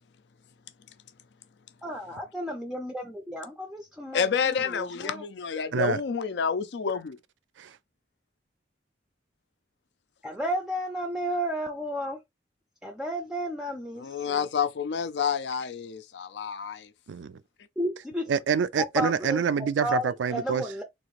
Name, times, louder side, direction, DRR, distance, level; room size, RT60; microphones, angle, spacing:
voice 1, 1.8-5.2 10.2-12.2 12.8-14.5 17.8-18.3 19.0-19.4 19.8-20.8, equal, 5° right, 0.4 m, -32 dB
voice 2, 4.1-7.2 14.0-16.9, left 6 dB, 70° left, 0.4 m, -29 dB
voice 3, 18.3-20.6, right 6 dB, 85° right, 0.4 m, -26 dB
3.6 x 2.5 x 3.0 m
head